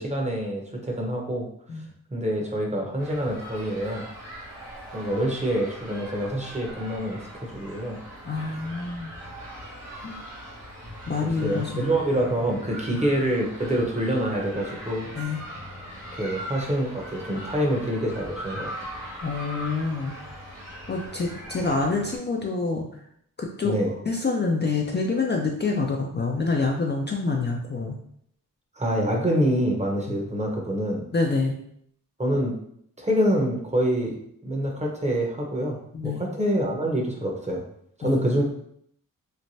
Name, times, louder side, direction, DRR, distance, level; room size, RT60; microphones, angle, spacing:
voice 1, 0.0-1.5 2.1-4.1 4.9-8.0 11.2-15.1 16.1-18.7 23.6-23.9 28.8-31.0 32.2-32.5 33.0-37.6 38.0-38.4, right 1 dB, 20° right, 0 dB, 0.8 m, -26 dB
sound 1, 3.0-22.2, equal, 90° right, 1.0 m, -40 dB
voice 2, 8.3-9.1 10.0-10.2 11.1-12.0 12.9-13.0 15.2-15.4 19.2-20.1 20.9-22.9 23.4-23.7 24.1-28.0 30.1-30.2 31.1-31.6 35.9-36.2 38.0-38.2, left 3 dB, 35° left, 0 dB, 0.4 m, -27 dB
3.2 x 2.1 x 2.6 m, 0.67 s
cardioid pair, 50°, 33 cm